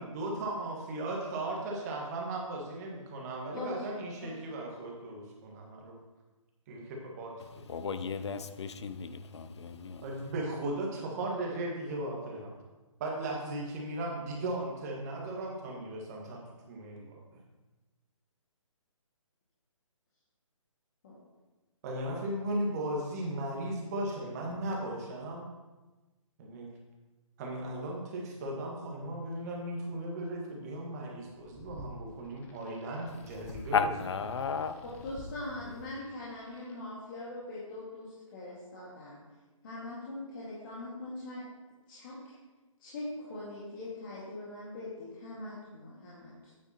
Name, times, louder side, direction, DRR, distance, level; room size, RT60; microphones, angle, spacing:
voice 1, 0.0-5.9 6.7-7.7 10.0-12.5 13.0-16.4 16.7-17.2 21.8-25.5 26.4-26.7 27.4-33.9, right 1 dB, 30° right, 1.7 m, -37 dB
voice 2, 7.4-10.1 33.4-34.8, left 6 dB, 55° left, 0.6 m, -34 dB
sound 1, 31.2-36.8, left 1 dB, 10° left, 0.6 m, -51 dB
voice 3, 34.8-39.2 39.6-41.4 41.9-42.3 42.8-46.5, left 2 dB, 40° left, 2.0 m, -42 dB
9.0 x 8.1 x 3.0 m
figure-of-eight pair, 145°, 17 cm